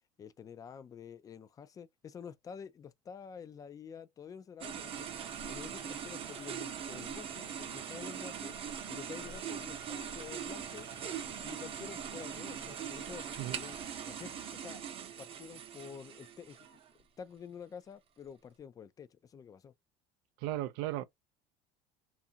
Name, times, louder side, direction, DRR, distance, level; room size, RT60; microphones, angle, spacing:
voice 1, 0.2-5.1 5.5-8.5 8.9-10.9 11.4-14.8 15.2-16.7 17.2-19.7, left 7 dB, 25° left, 0.4 m, -49 dB
sound 1, 4.6-16.9, right 8 dB, 40° right, 0.7 m, -42 dB
sound 2, 4.8-14.6, left 10 dB, 75° left, 0.6 m, -59 dB
voice 2, 20.4-21.0, right 15 dB, 80° right, 0.4 m, -35 dB
2.6 x 2.4 x 2.7 m
cardioid pair, 120°, 15 cm